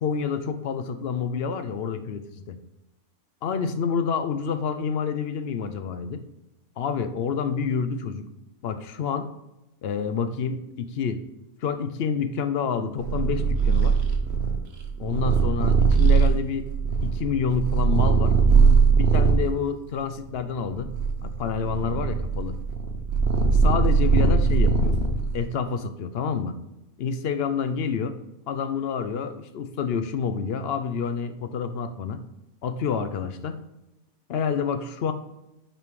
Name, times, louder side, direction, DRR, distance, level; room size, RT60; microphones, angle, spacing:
voice 1, 0.0-2.6 3.4-6.2 6.8-8.3 8.6-9.3 9.8-11.2 11.6-14.0 15.0-16.7 17.0-18.3 18.9-20.9 21.2-22.6 23.5-24.9 25.3-26.6 27.0-28.2 28.5-32.2 32.6-33.6 34.3-35.1, left 6 dB, 60° left, 10 dB, 0.6 m, -28 dB
Purr, 13.0-19.5 20.2-25.4, right 5 dB, 55° right, 1.0 m, -20 dB
5.4 x 5.1 x 4.7 m, 0.93 s
omnidirectional pair, 1.5 m